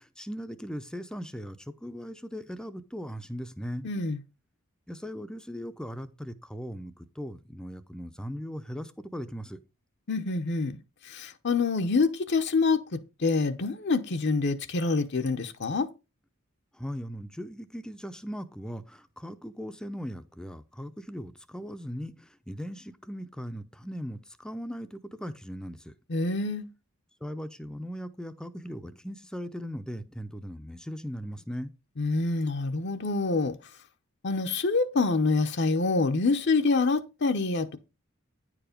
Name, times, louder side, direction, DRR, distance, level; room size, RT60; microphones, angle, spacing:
voice 1, 0.0-3.9 4.9-9.6 16.8-22.1 22.5-25.9 27.2-31.7, equal, 5° left, 0.6 m, -38 dB
voice 2, 3.8-4.2 10.1-10.8 11.1-15.9 26.1-26.7 32.0-33.6 34.2-37.8, left 3 dB, 55° left, 0.7 m, -26 dB
9.7 x 4.8 x 5.1 m
head